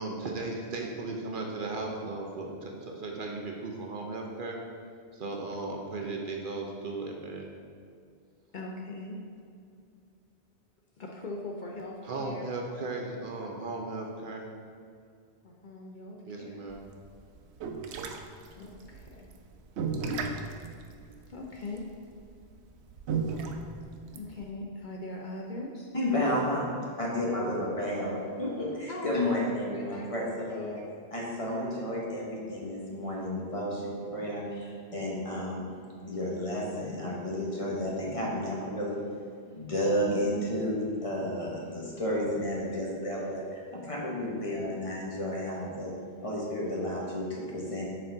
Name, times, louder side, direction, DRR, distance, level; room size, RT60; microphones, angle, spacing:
voice 1, 0.0-4.6 5.1-7.5 12.0-14.5 16.2-16.8, right 3 dB, 55° right, 0 dB, 0.8 m, -36 dB
voice 2, 8.5-9.2 11.0-12.5 15.4-16.7 18.5-19.3 21.3-21.8 24.0-25.9 28.9-29.2 29.7-30.0 30.5-30.7, left 2 dB, 55° left, -1 dB, 0.7 m, -40 dB
sound 1, 16.7-24.5, right 4 dB, 90° right, 0.9 m, -34 dB
voice 3, 25.9-30.8 31.1-35.7 36.0-39.1 39.5-45.9 46.2-47.9, left 1 dB, 35° left, -4 dB, 1.1 m, -32 dB
6.4 x 4.4 x 3.8 m, 2.3 s
omnidirectional pair, 1.1 m